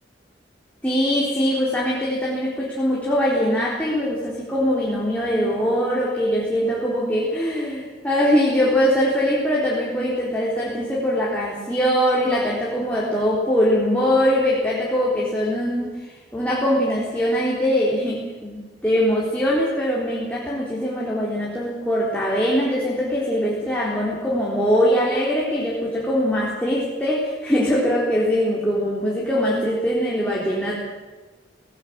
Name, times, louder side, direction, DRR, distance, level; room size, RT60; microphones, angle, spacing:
voice 1, 0.8-30.8, equal, 10° left, -5 dB, 3.9 m, -22 dB
18.5 x 18.0 x 8.7 m, 1.3 s
head